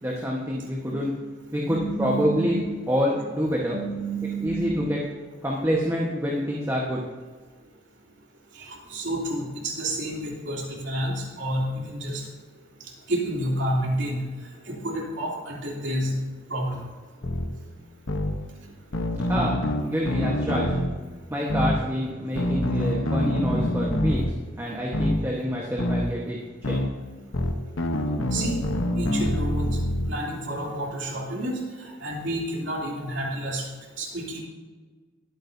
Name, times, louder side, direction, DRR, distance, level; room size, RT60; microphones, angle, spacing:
voice 1, 0.0-1.1 1.5-2.6 2.9-3.8 4.4-5.0 5.4-7.0 19.3-20.8 21.3-24.2 24.6-26.4 26.7-26.8, equal, 15° right, -3 dB, 1.3 m, -27 dB
voice 2, 1.7-2.6 3.7-4.7 8.6-12.2 13.1-14.2 14.7-16.2 16.5-16.8 28.3-28.6 29.0-29.8 30.1-33.6 34.0-34.4, right 1 dB, 65° right, -3 dB, 3.1 m, -29 dB
sound 1, 17.2-17.5 18.1-18.3 18.9-20.9 21.5-21.8 22.4-24.3 24.9-25.2 25.8-26.0 26.6-26.9 27.3-30.1, left 1 dB, 80° left, 1.1 m, -25 dB
20.5 x 8.9 x 2.8 m, 1.4 s
head